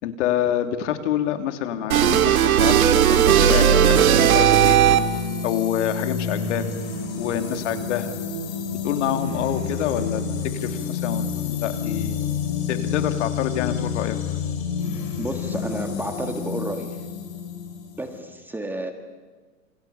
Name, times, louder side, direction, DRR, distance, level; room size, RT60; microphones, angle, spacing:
voice 1, 0.0-4.1 4.3-4.9 5.4-6.6 7.2-8.1 8.8-10.2 10.6-12.2 12.7-14.2, left 10 dB, 60° left, 8 dB, 2.9 m, -27 dB
sound 1, 1.9-5.3, right 9 dB, 90° right, 2.4 m, -16 dB
sound 2, 3.5-18.2, left 6 dB, 35° left, 5.9 m, -29 dB
voice 2, 15.2-17.0 18.0-18.9, right 1 dB, 5° right, 5 dB, 1.5 m, -31 dB
28.0 x 27.5 x 7.2 m, 1.4 s
supercardioid pair, 155°, 41 cm